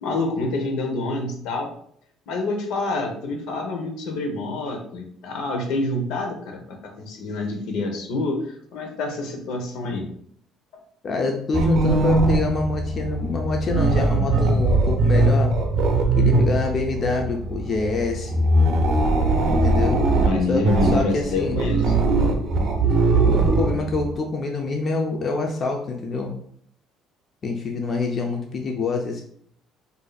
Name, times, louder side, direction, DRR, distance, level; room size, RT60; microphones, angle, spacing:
voice 1, 0.0-1.7 2.3-8.4 8.7-10.1 20.2-22.0, left 2 dB, 80° left, 3 dB, 0.8 m, -27 dB
voice 2, 11.0-15.6 16.2-18.5 19.5-20.0 20.5-21.6 23.2-26.3 27.4-29.2, left 3 dB, 40° left, 2 dB, 0.5 m, -26 dB
sound 1, 11.5-24.1, right 2 dB, 60° right, 0.5 m, -20 dB
4.8 x 2.6 x 2.3 m, 0.64 s
cardioid pair, 120°, 0 cm